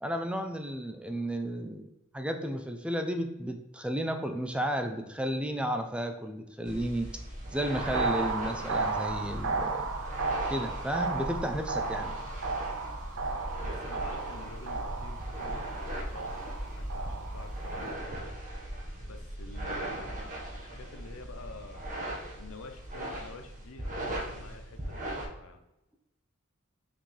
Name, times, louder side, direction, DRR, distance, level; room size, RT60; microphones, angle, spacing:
voice 1, 0.0-7.1 7.5-9.9 10.5-12.2, equal, 5° right, 6 dB, 0.5 m, -33 dB
sound 1, 6.6-25.2, right 1 dB, 40° right, 1.4 m, -38 dB
sound 2, 7.7-17.9, right 3 dB, 85° right, 0.6 m, -34 dB
voice 2, 13.6-18.3 19.0-20.2 20.6-22.0 22.4-25.6, left 3 dB, 80° left, 6 dB, 0.8 m, -48 dB
5.7 x 5.1 x 3.3 m, 0.91 s
head